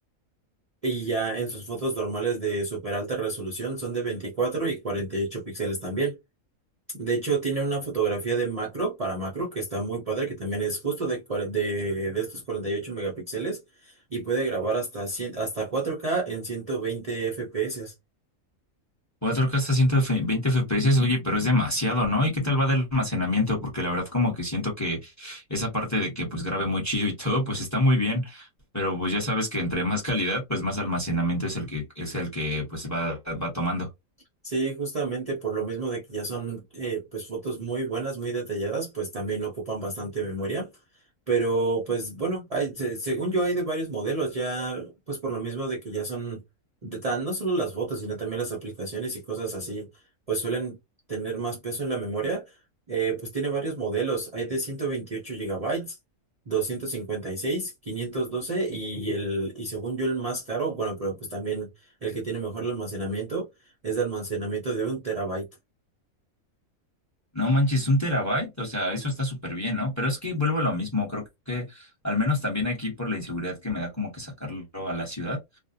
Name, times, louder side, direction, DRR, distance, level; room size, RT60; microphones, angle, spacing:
voice 1, 0.8-6.2 6.9-17.9 34.4-40.7 41.3-46.4 46.8-49.9 50.3-50.8 51.1-52.4 52.9-56.0 56.5-63.5 63.8-65.5, right 3 dB, 45° right, 0.5 m, -29 dB
voice 2, 19.2-28.5 28.7-33.9 67.3-75.4, left 1 dB, 15° left, 0.8 m, -26 dB
2.5 x 2.1 x 2.6 m
omnidirectional pair, 1.5 m